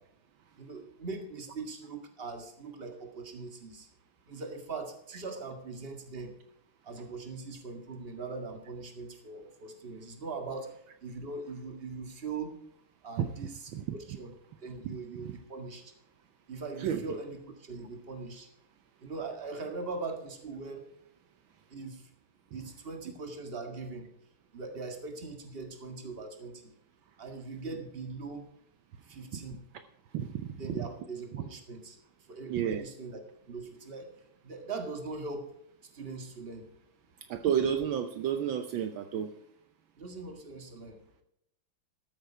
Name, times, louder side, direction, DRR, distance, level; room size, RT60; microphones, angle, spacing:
voice 1, 0.6-3.9 4.3-6.4 6.8-10.7 11.0-12.6 13.0-13.5 13.9-14.3 14.6-15.9 16.5-18.5 19.0-20.9 21.7-22.1 22.5-24.1 24.5-26.7 27.2-28.4 29.0-29.6 30.6-32.0 32.3-34.1 34.4-35.5 35.8-36.7 40.0-41.0, right 3 dB, 30° right, 5 dB, 1.9 m, -41 dB
voice 2, 13.7-14.2 14.8-15.4 16.8-17.2 29.3-29.4 30.1-30.9 31.3-31.4 32.5-32.8 37.3-39.3, right 9 dB, 70° right, 8 dB, 1.5 m, -32 dB
13.5 x 8.8 x 4.8 m, 0.75 s
omnidirectional pair, 2.3 m